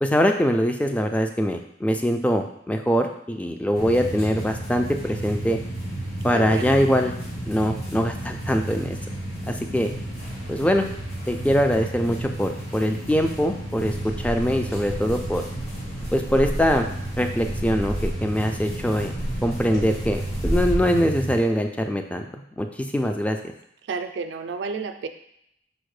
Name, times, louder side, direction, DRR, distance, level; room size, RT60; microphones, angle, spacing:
voice 1, 0.0-5.6 6.2-7.1 7.4-9.0 9.5-9.9 10.5-10.8 11.3-15.4 16.1-16.9 17.2-22.2 22.6-23.4, equal, 10° left, 4 dB, 0.3 m, -23 dB
sound 1, 3.7-21.4, right 1 dB, 40° left, 1.7 m, -32 dB
voice 2, 6.3-6.8 23.9-25.1, right 4 dB, 80° right, 7 dB, 0.4 m, -31 dB
sound 2, 13.8-20.7, equal, 75° left, 1.9 m, -32 dB
5.1 x 2.1 x 4.8 m, 0.75 s
head